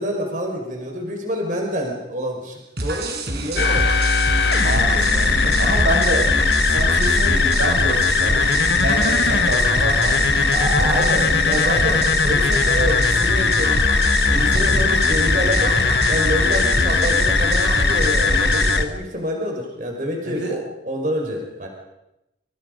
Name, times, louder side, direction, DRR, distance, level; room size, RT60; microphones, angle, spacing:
voice 1, 0.0-3.9 5.3-5.7 10.5-21.7, equal, 45° right, 1 dB, 5.3 m, -27 dB
sound 1, 2.8-18.8, right 2 dB, 60° right, 5.1 m, -28 dB
sound 2, 3.6-18.8, left 4 dB, 70° left, 1.6 m, -19 dB
voice 2, 4.5-5.3 5.6-6.3 6.7-12.0 14.4-14.9 20.2-20.6, right 2 dB, 85° right, 1 dB, 7.4 m, -28 dB
29.0 x 29.0 x 5.4 m, 0.89 s
head